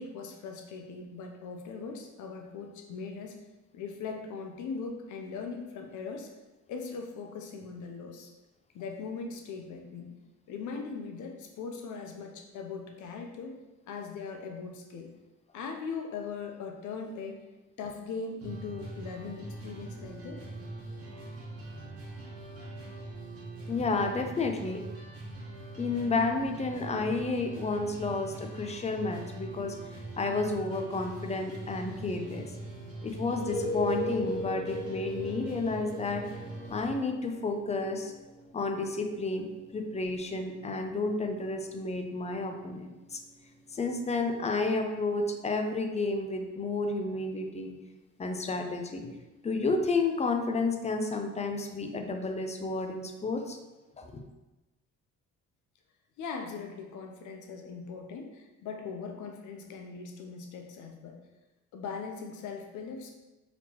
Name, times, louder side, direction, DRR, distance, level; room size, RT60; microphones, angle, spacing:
voice 1, 0.0-3.4 3.7-6.3 6.7-8.3 8.7-10.1 10.5-13.5 13.9-15.1 15.5-17.4 17.8-20.4 56.2-61.2 61.7-63.1, left 5 dB, 80° left, 3 dB, 0.7 m, -40 dB
sound 1, 18.4-37.0, right 2 dB, 50° right, 1.3 m, -43 dB
voice 2, 23.7-24.8 25.8-29.8 30.2-32.5 33.0-36.3 36.7-38.1 38.5-43.2 43.7-47.8 48.2-49.0 49.4-53.6 54.0-54.2, left 3 dB, 20° left, 5 dB, 0.5 m, -31 dB
sound 2, 33.2-44.8 49.0-49.1, left 1 dB, 50° left, 0.9 m, -40 dB
4.2 x 3.0 x 2.9 m, 1.1 s
cardioid pair, 90°, 30 cm